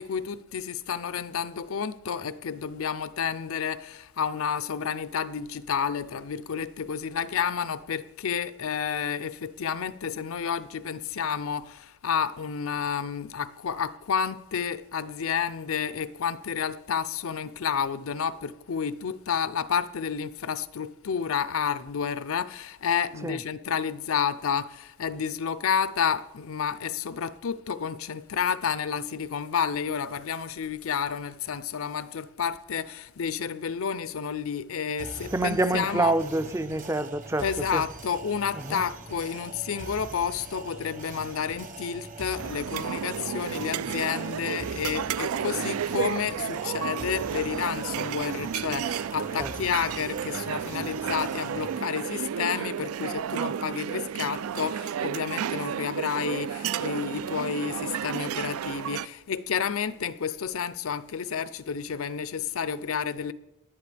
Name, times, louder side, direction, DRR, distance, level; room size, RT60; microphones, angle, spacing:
voice 1, 0.0-36.2 37.4-63.3, left 7 dB, 75° left, 0.5 m, -30 dB
sound 1, 35.0-51.8, right 2 dB, 35° right, 1.0 m, -43 dB
voice 2, 35.3-37.4 37.7-37.8 38.5-38.8 49.4-49.5, right 2 dB, 15° right, 0.4 m, -27 dB
sound 2, 42.4-59.1, right 8 dB, 80° right, 0.3 m, -32 dB
19.0 x 11.5 x 3.4 m
head